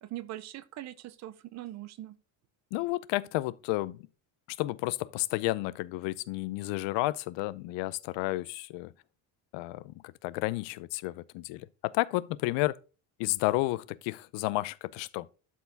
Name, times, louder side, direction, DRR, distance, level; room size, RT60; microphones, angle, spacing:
voice 1, 0.0-2.2, right 14 dB, 40° right, 0.6 m, -41 dB
voice 2, 2.7-4.0 4.5-8.9 9.5-12.8 13.2-15.3, left 19 dB, 80° left, 0.7 m, -31 dB
12.0 x 4.7 x 3.4 m
cardioid pair, 180°, 43 cm